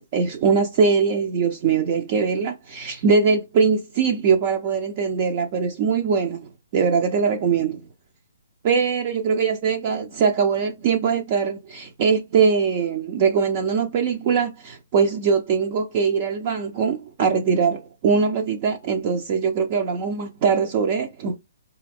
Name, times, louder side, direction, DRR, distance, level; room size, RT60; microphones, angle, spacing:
voice 1, 0.0-7.9 8.6-21.4, right 5 dB, 35° right, 0.4 m, -22 dB
4.2 x 2.3 x 3.4 m
hypercardioid pair, 155°, 0 cm